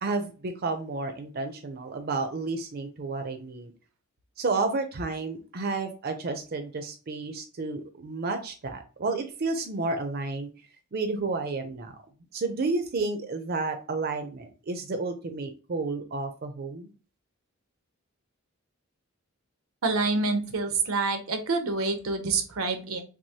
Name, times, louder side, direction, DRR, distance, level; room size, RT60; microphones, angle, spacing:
voice 1, 0.0-3.7 4.4-10.5 10.9-11.9 12.3-16.9, right 3 dB, 50° right, 7 dB, 0.5 m, -31 dB
voice 2, 19.8-23.0, right 3 dB, 85° right, 7 dB, 0.8 m, -27 dB
6.0 x 2.0 x 2.8 m, 0.35 s
head